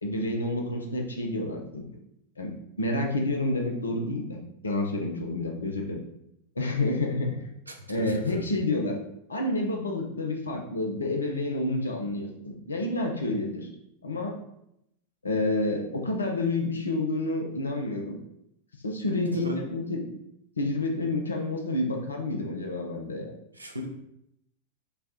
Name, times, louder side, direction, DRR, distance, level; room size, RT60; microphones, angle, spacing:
voice 1, 0.0-1.8 2.4-6.0 6.6-7.4 7.9-9.0 9.3-13.7 14.0-14.4 15.2-18.2 18.8-20.0 20.6-23.3, left 2 dB, 75° left, 2 dB, 0.6 m, -29 dB
voice 2, 7.7-8.4 19.3-19.6 23.5-23.9, equal, 80° right, 3 dB, 0.6 m, -35 dB
5.1 x 2.3 x 2.9 m, 0.78 s
figure-of-eight pair, 90°, 0 cm